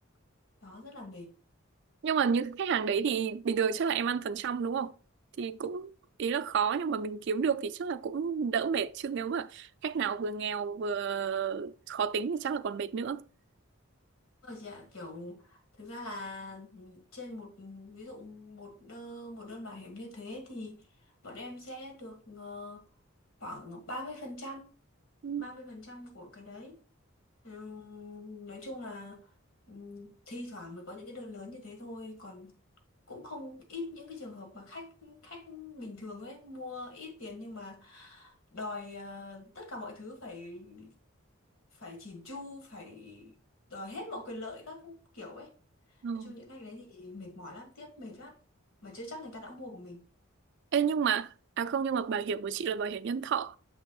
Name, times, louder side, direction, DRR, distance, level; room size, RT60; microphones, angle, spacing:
voice 1, 0.6-1.4 14.4-20.9 21.2-22.8 23.4-24.7 25.4-26.8 27.4-29.3 29.7-32.6 33.1-40.9 41.7-43.3 43.7-45.5 46.1-48.4 48.8-50.0, left 2 dB, 70° left, 1.8 m, -44 dB
voice 2, 2.0-5.0 5.4-5.9 6.2-13.2 25.2-25.5 46.0-46.3 50.7-53.6, right 6 dB, 55° right, 0.3 m, -31 dB
6.7 x 6.3 x 2.3 m
head